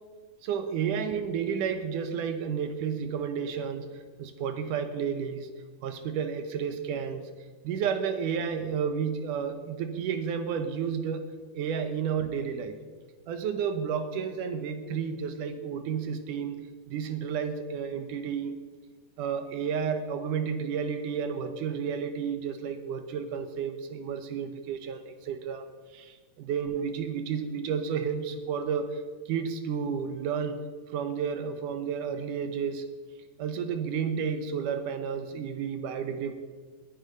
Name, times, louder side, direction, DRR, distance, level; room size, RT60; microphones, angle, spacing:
voice 1, 0.4-5.5 5.8-7.3 7.6-11.3 11.5-12.8 13.3-18.6 19.2-25.7 25.9-32.8 33.4-36.3, right 7 dB, 70° right, 8 dB, 2.3 m, -31 dB
19.5 x 10.0 x 5.3 m, 1.5 s
omnidirectional pair, 4.1 m